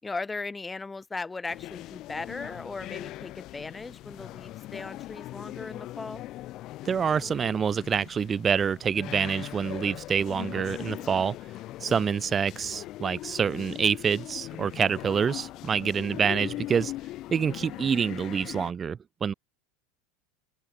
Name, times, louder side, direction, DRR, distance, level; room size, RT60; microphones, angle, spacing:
voice 1, 0.0-6.3, left 3 dB, 15° left, 4.1 m, -37 dB
sound 1, 1.5-18.7, left 16 dB, 50° left, 6.4 m, -40 dB
voice 2, 6.8-11.4 11.8-16.9 17.3-19.3, right 7 dB, 25° right, 2.9 m, -27 dB
open air
hypercardioid pair, 95°, 0 cm